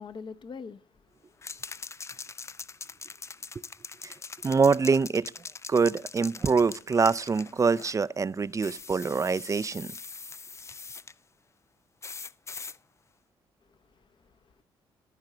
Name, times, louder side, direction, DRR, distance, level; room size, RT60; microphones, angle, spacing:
voice 1, 0.0-1.9 13.6-14.6, left 5 dB, 45° left, 1.0 m, -46 dB
sound 1, 1.4-8.0 8.6-11.1 12.0-12.8, left 4 dB, 25° left, 0.4 m, -42 dB
voice 2, 4.4-5.3 5.7-9.9, right 5 dB, 30° right, 0.4 m, -25 dB
14.0 x 4.9 x 6.7 m
supercardioid pair, 60°, 11 cm